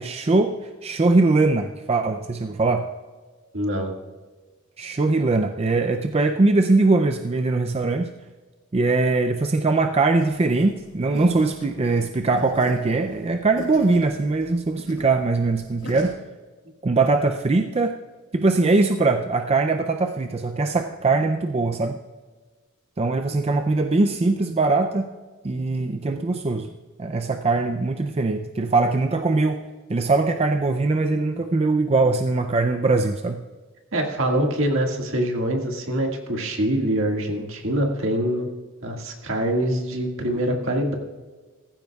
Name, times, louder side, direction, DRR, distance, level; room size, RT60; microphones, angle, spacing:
voice 1, 0.0-2.8 4.8-8.1 8.7-16.1 16.8-17.9 18.3-22.0 23.0-25.1 25.4-26.7 27.0-29.6 29.9-33.4, right 3 dB, 30° right, 6 dB, 0.4 m, -21 dB
voice 2, 3.5-3.9 33.9-38.5 38.8-40.9, right 1 dB, 65° right, 2 dB, 1.9 m, -24 dB
sound 1, 10.2-16.1, left 1 dB, 70° left, 4.4 m, -41 dB
16.0 x 14.5 x 2.4 m, 1.3 s
head